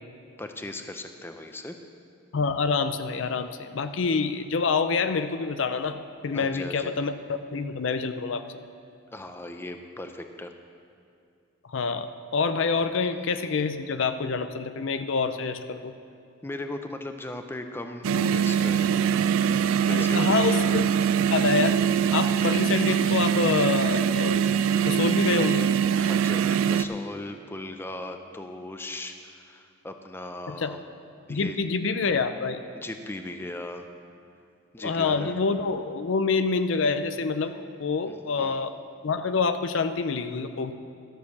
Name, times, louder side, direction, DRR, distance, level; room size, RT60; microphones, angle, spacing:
voice 1, 0.4-1.8 6.3-6.9 9.1-10.5 12.9-13.1 13.5-13.6 16.4-19.0 19.8-20.7 25.9-30.8 31.3-31.6 32.7-33.9 34.7-35.3 38.1-38.6, left 1 dB, 10° left, 6 dB, 0.5 m, -38 dB
voice 2, 2.3-8.6 11.7-15.9 19.9-20.9 21.3-21.8 22.1-24.4 24.8-25.7 30.5-30.8 31.3-32.6 34.8-38.7 39.0-40.7, left 4 dB, 65° left, 10 dB, 0.5 m, -27 dB
sound 1, 18.0-26.8, right 8 dB, 85° right, 0.4 m, -23 dB
13.0 x 6.6 x 7.0 m, 2.5 s
head